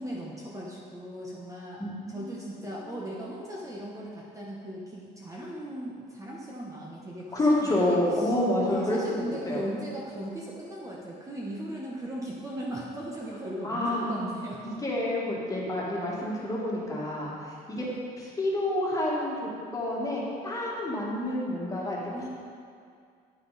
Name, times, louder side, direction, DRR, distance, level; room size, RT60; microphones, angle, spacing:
voice 1, 0.0-8.3 8.6-14.8 17.8-18.0 22.1-22.3, right 1 dB, 20° right, -4 dB, 1.0 m, -38 dB
voice 2, 1.8-2.4 7.3-9.0 9.5-9.6 13.6-14.3 14.6-17.3 17.7-17.9 18.2-22.0, left 1 dB, 20° left, -5 dB, 1.9 m, -28 dB
9.2 x 5.8 x 4.1 m, 2.3 s
cardioid pair, 110°, 17 cm